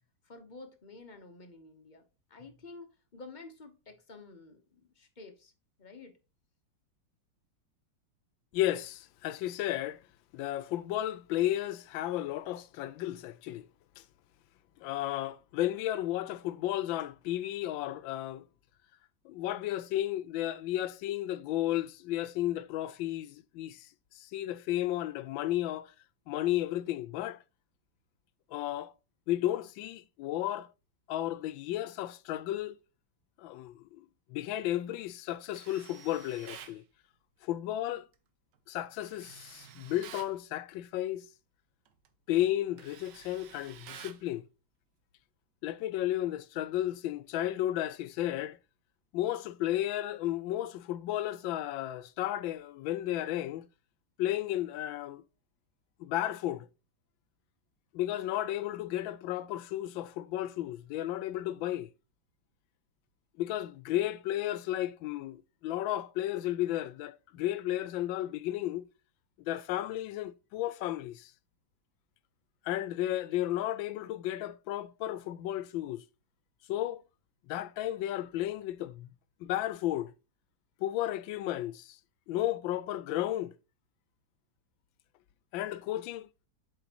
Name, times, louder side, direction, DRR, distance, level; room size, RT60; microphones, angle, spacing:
voice 1, 0.2-2.0 2.3-5.5 5.8-6.1, left 3 dB, 35° left, 0.8 m, -50 dB
voice 2, 8.5-10.0 10.3-13.7 14.0-14.1 14.8-18.4 19.2-23.9 24.1-25.9 26.3-27.4 28.5-28.9 29.3-30.7 31.1-32.8 33.4-36.8 37.4-38.1 38.7-41.2 42.3-44.4 45.6-48.6 49.1-53.7 54.2-55.2 56.0-56.7 57.9-61.9 63.4-68.8 69.4-71.3 72.6-76.0 76.7-77.0 77.5-79.1 79.4-80.1 80.8-82.0 82.3-83.5 85.5-86.3, left 13 dB, 85° left, 1.3 m, -33 dB
Tools, 35.5-36.8 39.0-40.4 41.9-42.1 42.4-44.3, right 9 dB, 70° right, 1.3 m, -50 dB
7.7 x 5.1 x 2.9 m
omnidirectional pair, 2.0 m